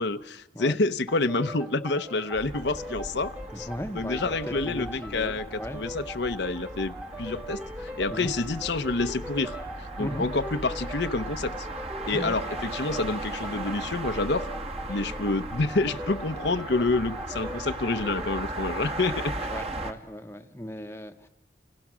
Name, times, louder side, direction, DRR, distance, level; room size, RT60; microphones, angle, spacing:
voice 1, 0.0-3.7 3.9-11.7 12.1-14.5 14.9-19.5, left 3 dB, 70° left, 0.9 m, -28 dB
sound 1, 1.1-18.5, right 1 dB, 10° right, 1.3 m, -41 dB
sound 2, 2.3-19.9, right 2 dB, 35° right, 1.5 m, -37 dB
voice 2, 3.5-5.8 8.1-8.3 10.0-10.3 12.1-12.3 19.4-21.3, equal, 15° left, 1.0 m, -37 dB
29.0 x 28.0 x 6.2 m
head